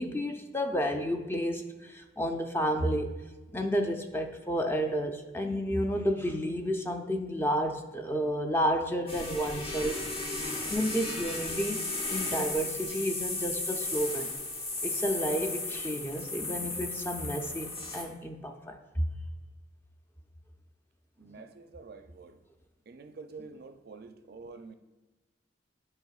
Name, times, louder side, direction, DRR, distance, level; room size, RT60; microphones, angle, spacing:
voice 1, 0.0-3.1 3.5-10.0 10.7-11.8 12.1-14.3 14.8-19.1 21.3-21.4, equal, 15° left, 4 dB, 0.4 m, -31 dB
sound 1, 9.1-18.0, left 2 dB, 30° left, 1.0 m, -35 dB
voice 2, 21.2-22.4 22.9-24.7, right 4 dB, 55° right, 8 dB, 0.4 m, -47 dB
10.5 x 5.0 x 2.3 m, 1.2 s
head